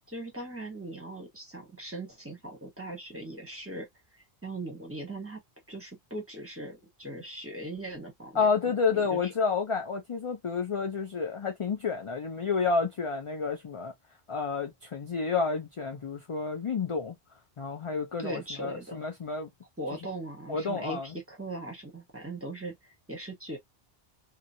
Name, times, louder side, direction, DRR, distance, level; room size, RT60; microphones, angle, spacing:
voice 1, 0.1-3.9 4.4-5.4 5.7-8.5 8.9-9.3 18.2-19.0 19.8-23.6, right 1 dB, 15° right, 1.1 m, -39 dB
voice 2, 8.3-13.9 14.3-17.1 17.6-19.5 20.5-21.1, left 5 dB, 45° left, 0.4 m, -30 dB
2.9 x 2.4 x 2.6 m
omnidirectional pair, 1.1 m